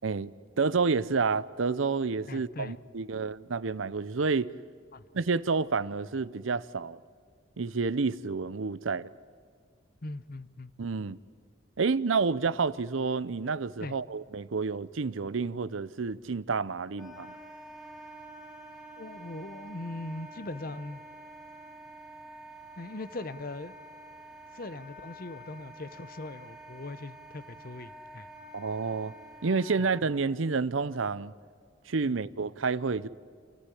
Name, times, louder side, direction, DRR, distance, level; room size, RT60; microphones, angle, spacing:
voice 1, 0.6-4.5 5.1-7.0 7.6-9.1 10.8-11.2 11.8-17.3 28.5-29.1 29.4-31.3 31.9-33.1, right 4 dB, 80° right, 0.7 m, -29 dB
voice 2, 2.3-2.8 4.9-5.0 10.0-10.7 13.8-14.0 19.0-21.0 22.8-23.7 24.5-28.3 32.0-32.1, left 2 dB, 45° left, 0.8 m, -40 dB
Wind instrument woodwind instrument, 17.0-30.0, right 1 dB, ahead, 2.3 m, -48 dB
28.0 x 14.5 x 10.0 m
head